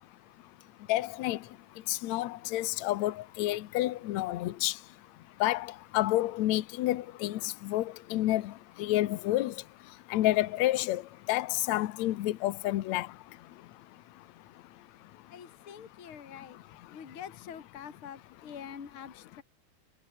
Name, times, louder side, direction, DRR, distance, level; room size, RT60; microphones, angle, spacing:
voice 1, 0.9-1.4 1.9-4.7 5.4-8.5 8.8-9.5 10.1-11.0 11.3-13.1, left 16 dB, 85° left, 1.6 m, -29 dB
voice 2, 15.3-16.6 16.9-19.4, left 8 dB, 35° left, 3.1 m, -45 dB
omnidirectional pair, 4.5 m